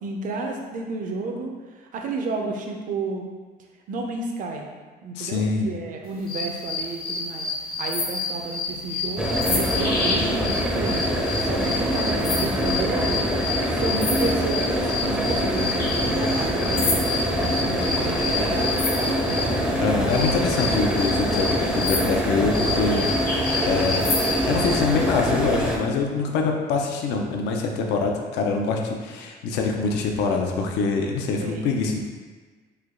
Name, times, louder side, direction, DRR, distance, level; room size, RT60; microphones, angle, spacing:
voice 1, 0.0-1.5 1.9-3.3 3.9-4.7 5.0-7.5 7.8-11.1 11.4-13.2 13.7-20.1 25.0-25.1 31.4-31.7, right 3 dB, 50° right, 2 dB, 0.5 m, -31 dB
voice 2, 5.2-5.7 19.8-23.1 23.7-24.1 24.4-32.0, left 4 dB, 85° left, 2 dB, 0.5 m, -24 dB
sound 1, 6.3-19.5 20.1-24.8, left 3 dB, 60° left, 0.8 m, -29 dB
sound 2, 9.2-25.8, equal, 5° right, 0.5 m, -24 dB
3.3 x 2.2 x 3.6 m, 1.4 s
cardioid pair, 110°, 17 cm